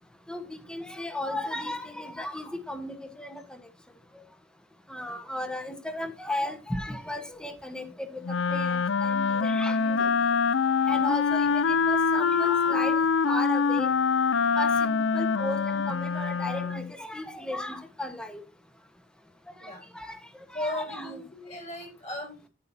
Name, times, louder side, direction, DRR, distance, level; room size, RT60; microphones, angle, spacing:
voice 1, 0.3-3.4 4.9-10.1 10.9-12.9 13.2-13.9 14.6-18.4 19.6-20.2 20.5-21.2, left 1 dB, 5° left, 8 dB, 1.3 m, -35 dB
Wind instrument woodwind instrument, 8.2-16.9, left 5 dB, 70° left, 0.5 m, -25 dB
voice 2, 19.5-19.8 20.5-22.4, left 1 dB, 35° left, 2 dB, 4.6 m, -36 dB
10.5 x 9.6 x 2.8 m, 0.32 s
head